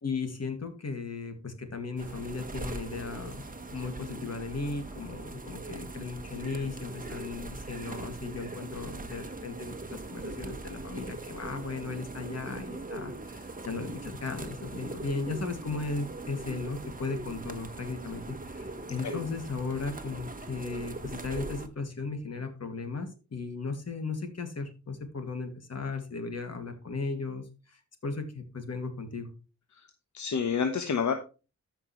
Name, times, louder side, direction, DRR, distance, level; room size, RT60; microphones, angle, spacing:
voice 1, 0.0-29.3, left 4 dB, 60° left, 6 dB, 2.4 m, -36 dB
sound 1, 2.0-21.7, right 2 dB, 30° right, 1.3 m, -41 dB
voice 2, 30.1-31.1, left 6 dB, 80° left, 6 dB, 1.1 m, -28 dB
14.0 x 5.8 x 3.2 m, 0.31 s
wide cardioid pair, 90°, 29 cm